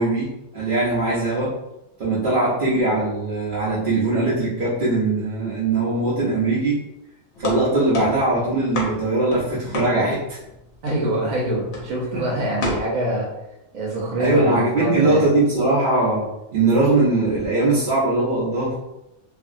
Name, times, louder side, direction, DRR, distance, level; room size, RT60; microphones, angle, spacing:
voice 1, 0.0-1.5 2.0-6.8 7.4-10.4 12.1-12.2 14.2-18.8, right 2 dB, 50° right, -9 dB, 0.7 m, -21 dB
sound 1, 7.3-10.5 10.9-11.3 11.7-12.0 12.6-12.8, left 2 dB, 60° left, 1.0 m, -29 dB
voice 2, 10.8-13.3 13.7-15.3, right 1 dB, 85° right, -3 dB, 1.1 m, -25 dB
2.8 x 2.7 x 2.5 m, 0.91 s
omnidirectional pair, 1.4 m